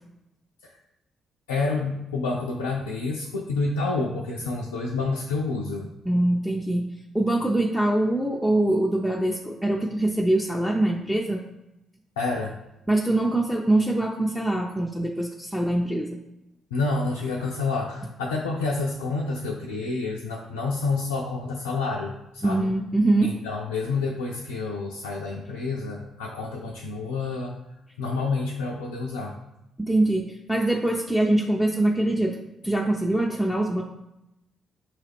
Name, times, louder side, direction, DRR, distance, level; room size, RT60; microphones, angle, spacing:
voice 1, 1.5-5.9 12.2-12.5 16.7-22.7 23.2-27.5 28.0-29.3, left 3 dB, 85° left, -2 dB, 0.3 m, -28 dB
voice 2, 6.1-6.9 7.1-11.4 12.9-16.1 22.4-23.3 29.8-32.4 32.6-33.8, right 1 dB, ahead, -1 dB, 0.5 m, -23 dB
5.7 x 2.4 x 3.4 m, 0.89 s
hypercardioid pair, 45°, 0 cm